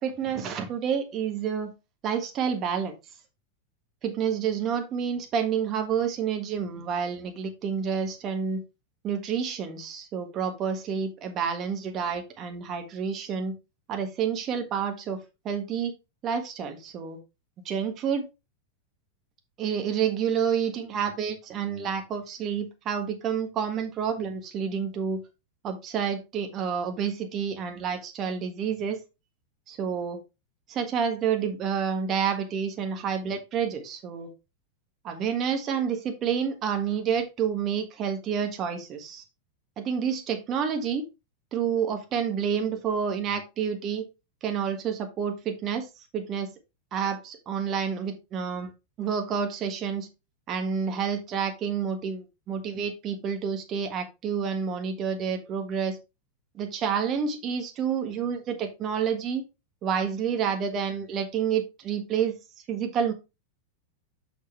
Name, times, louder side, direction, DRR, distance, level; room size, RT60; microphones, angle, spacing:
voice 1, 0.0-1.7 2.0-2.9 4.0-8.6 9.0-13.5 13.9-15.2 15.4-15.9 16.2-17.2 17.6-18.2 19.6-25.2 25.6-29.0 29.7-30.2 30.7-34.3 35.0-39.2 39.8-41.0 41.5-44.0 44.4-45.9 46.1-46.5 46.9-48.7 49.0-50.1 50.5-56.0 56.5-59.4 59.8-62.4 62.7-63.1, right 7 dB, 35° right, 6 dB, 1.5 m, -29 dB
6.3 x 6.3 x 3.3 m, 0.26 s
hypercardioid pair, 95°, 0 cm